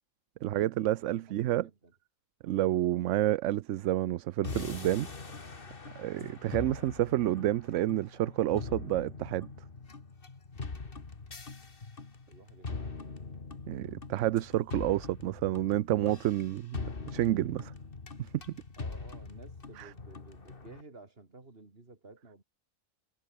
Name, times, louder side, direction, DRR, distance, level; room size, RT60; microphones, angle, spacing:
voice 1, 0.4-1.7 2.4-5.1 6.0-9.5 13.7-17.7 18.2-18.4 19.8-19.9, right 14 dB, 70° right, 0.9 m, -29 dB
voice 2, 1.0-1.9 12.3-13.2 18.8-22.4, right 3 dB, 45° right, 3.2 m, -54 dB
sound 1, 4.4-20.8, left 4 dB, 45° left, 2.1 m, -42 dB
omnidirectional pair, 1.4 m